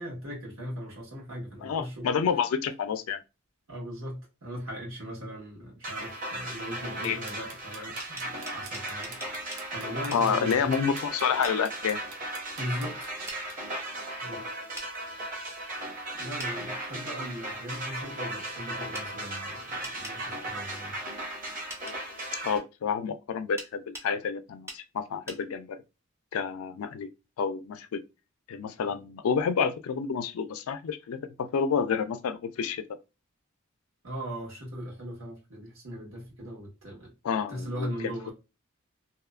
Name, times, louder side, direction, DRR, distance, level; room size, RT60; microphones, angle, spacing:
voice 1, 0.0-2.1 3.7-9.4 9.7-10.8 12.6-13.2 14.2-14.4 16.2-21.0 34.0-37.1 37.5-38.3, equal, 65° right, 1.4 m, -39 dB
voice 2, 1.6-3.2 7.0-7.2 10.1-12.0 22.4-25.8 26.3-27.1 27.4-28.0 28.5-32.8 37.2-38.3, left 6 dB, 80° left, 0.4 m, -29 dB
sound 1, 5.8-22.6, right 1 dB, 40° right, 1.0 m, -37 dB
sound 2, 7.0-13.5, right 5 dB, 85° right, 0.6 m, -47 dB
sound 3, 8.0-9.7 10.1-10.3 11.4-11.6 13.3-13.4 14.8-14.9 16.4-16.5 18.9-19.1 19.8-20.2 21.7-22.0 23.6-24.1 24.7-24.8 25.3-25.4, right 1 dB, 15° right, 0.5 m, -42 dB
2.9 x 2.0 x 2.3 m
head